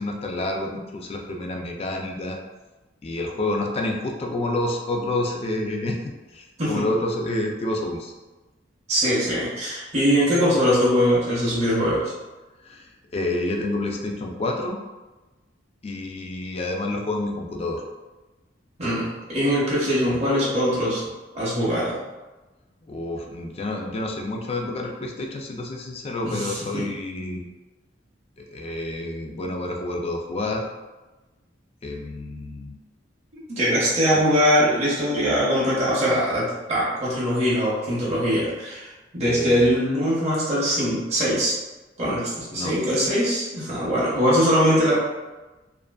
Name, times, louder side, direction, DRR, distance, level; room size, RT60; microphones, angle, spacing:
voice 1, 0.0-2.4 3.0-8.1 12.6-14.8 15.8-17.8 20.1-20.2 22.9-27.4 28.5-30.7 31.8-32.8 34.1-34.2 39.2-39.8 42.5-42.8, left 2 dB, 30° left, 1 dB, 0.3 m, -29 dB
voice 2, 8.9-12.1 18.8-21.0 21.3-22.0 26.2-26.8 33.5-41.5 42.0-44.9, equal, 35° right, -8 dB, 0.6 m, -22 dB
2.5 x 2.4 x 2.2 m, 1.1 s
head